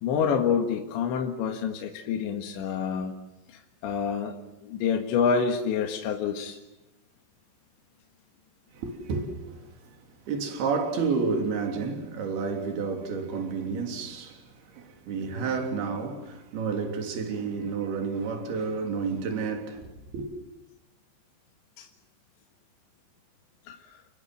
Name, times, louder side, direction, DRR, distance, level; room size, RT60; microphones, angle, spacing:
voice 1, 0.0-3.1 3.8-4.3 4.6-6.6 21.8-21.9 23.7-23.8, left 6 dB, 70° left, 3.8 m, -27 dB
voice 2, 8.7-10.0 10.3-14.4 14.7-20.3, right 5 dB, 55° right, 4.9 m, -30 dB
30.0 x 22.0 x 7.7 m
omnidirectional pair, 5.7 m